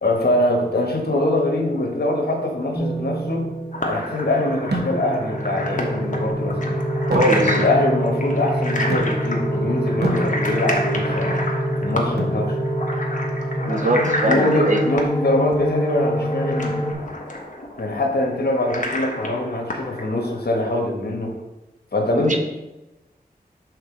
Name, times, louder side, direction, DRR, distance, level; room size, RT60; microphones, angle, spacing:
voice 1, 0.0-3.5 3.8-6.8 7.4-11.4 11.8-12.6 14.3-16.8 17.8-21.4 21.9-22.4, left 1 dB, 75° left, 1 dB, 1.3 m, -23 dB
sound 1, 2.7-16.9, equal, 20° left, 1.5 m, -25 dB
sound 2, 3.7-20.6, left 1 dB, 50° left, 1.3 m, -30 dB
sound 3, 4.7-5.3 7.1-7.8 8.9-9.5 10.0-10.8 12.2-12.5 14.0-14.7, right 1 dB, 85° right, 0.9 m, -29 dB
voice 2, 7.1-7.6 13.7-14.8 22.1-22.4, right 1 dB, 50° right, 3 dB, 1.0 m, -21 dB
6.5 x 4.1 x 5.0 m, 1.0 s
wide cardioid pair, 55°, 17 cm